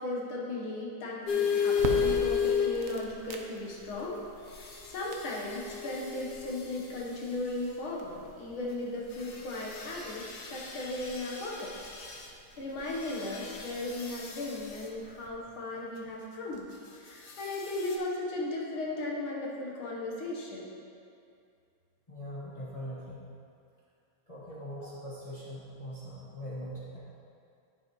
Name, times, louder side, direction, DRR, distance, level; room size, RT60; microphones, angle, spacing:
voice 1, 0.0-11.7 12.6-16.7 17.0-20.7, left 2 dB, 80° left, -3 dB, 2.0 m, -36 dB
sound 1, 1.3-3.4 4.5-7.0 9.1-12.3 12.9-14.8 17.2-18.0, left 7 dB, 60° left, 1.2 m, -34 dB
sound 2, 1.7-15.3, right 4 dB, 70° right, 0.7 m, -45 dB
voice 2, 22.1-23.2 24.3-27.0, equal, 20° left, -9 dB, 1.4 m, -41 dB
13.5 x 5.3 x 3.0 m, 2.4 s
omnidirectional pair, 2.2 m